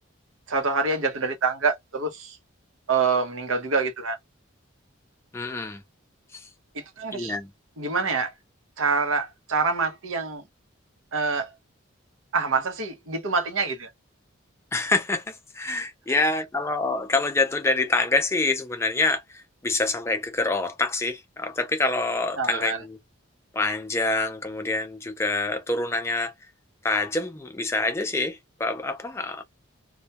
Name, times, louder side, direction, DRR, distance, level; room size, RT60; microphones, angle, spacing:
voice 1, 0.5-2.4 2.9-4.2 6.7-7.3 7.8-8.3 8.8-10.4 11.1-11.5 12.3-13.9 22.4-22.8, right 4 dB, 85° right, 0.7 m, -26 dB
voice 2, 5.3-5.8 6.3-6.5 7.1-7.5 14.7-23.0 23.5-26.3 26.8-29.4, left 2 dB, 15° left, 0.3 m, -26 dB
2.2 x 2.1 x 2.7 m
head